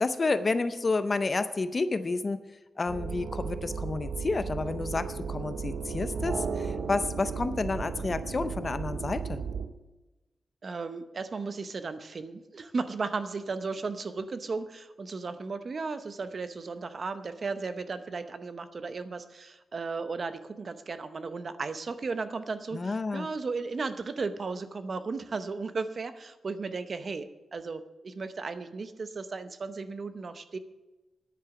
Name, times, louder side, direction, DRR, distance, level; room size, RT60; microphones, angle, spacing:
voice 1, 0.0-2.4 2.8-9.4 22.7-23.3, left 3 dB, 30° left, 11 dB, 0.5 m, -30 dB
sound 1, 2.9-9.7, right 5 dB, 80° right, 0.8 m, -35 dB
voice 2, 10.6-30.6, right 4 dB, 40° right, 11 dB, 0.7 m, -35 dB
10.0 x 8.6 x 7.1 m, 1.1 s
wide cardioid pair, 165°, 0 cm